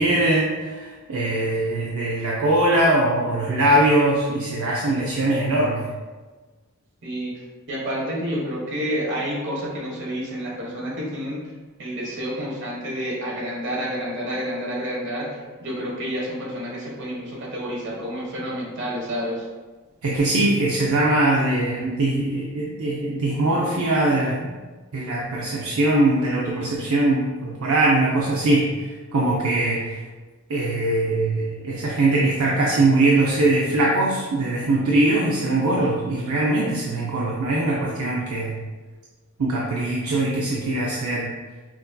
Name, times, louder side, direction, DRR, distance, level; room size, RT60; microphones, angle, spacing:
voice 1, 0.0-5.9 20.0-24.5 24.9-28.7 29.1-30.0 30.5-38.6 39.4-41.3, right 2 dB, 75° right, -4 dB, 0.5 m, -21 dB
voice 2, 7.0-11.4 11.8-19.5, equal, 60° right, -3 dB, 1.1 m, -29 dB
5.9 x 2.7 x 2.2 m, 1.3 s
head